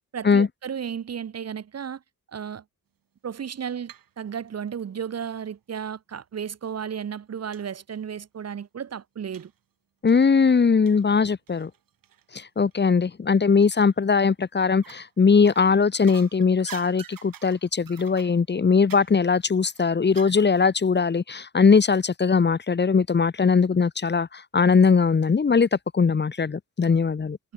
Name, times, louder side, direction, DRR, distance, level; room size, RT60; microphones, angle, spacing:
voice 1, 0.1-2.0 2.3-2.6 3.2-9.5, right 8 dB, 45° right, 1.2 m, -34 dB
sound 1, 3.6-4.1 4.4-5.5 6.3-6.4 6.8-6.9 7.5-7.7 8.0-8.1 9.3-9.6 10.1-12.4 12.7-12.9 13.6-14.2 14.7-15.1 15.4-20.7 21.0-21.1, right 9 dB, 70° right, 4.4 m, -47 dB
voice 2, 10.0-11.7 12.3-27.4, left 5 dB, 30° left, 1.3 m, -20 dB
wide cardioid pair, 135°, 35 cm